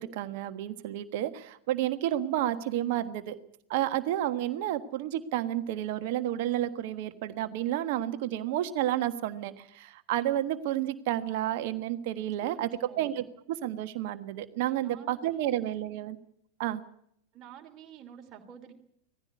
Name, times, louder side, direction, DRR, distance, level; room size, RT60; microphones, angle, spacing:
voice 1, 0.0-3.4 3.7-12.7 13.0-16.2 16.6-16.8, right 13 dB, 50° right, 10 dB, 1.4 m, -31 dB
voice 2, 12.4-13.1 14.8-15.6 17.3-18.7, right 8 dB, 30° right, 3 dB, 3.1 m, -49 dB
19.0 x 15.0 x 9.6 m, 0.71 s
figure-of-eight pair, 90°, 0 cm